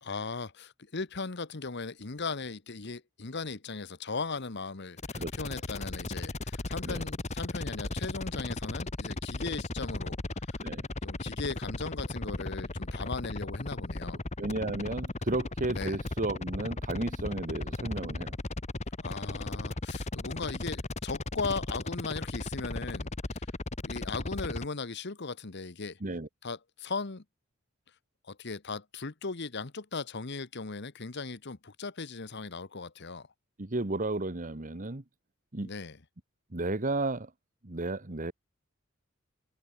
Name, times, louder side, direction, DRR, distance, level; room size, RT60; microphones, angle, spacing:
voice 1, 0.0-10.2 10.5-10.6 11.0-14.2 15.7-16.0 19.0-23.4 23.8-26.0 26.4-27.2 28.3-33.3 35.6-36.0, left 4 dB, 55° left, 1.2 m, -38 dB
sound 1, 5.0-24.7, left 2 dB, 35° left, 1.2 m, -36 dB
voice 2, 14.4-18.3 26.0-26.3 33.6-35.0 35.5-35.7 36.5-37.3 37.6-38.3, right 2 dB, 40° right, 1.4 m, -33 dB
head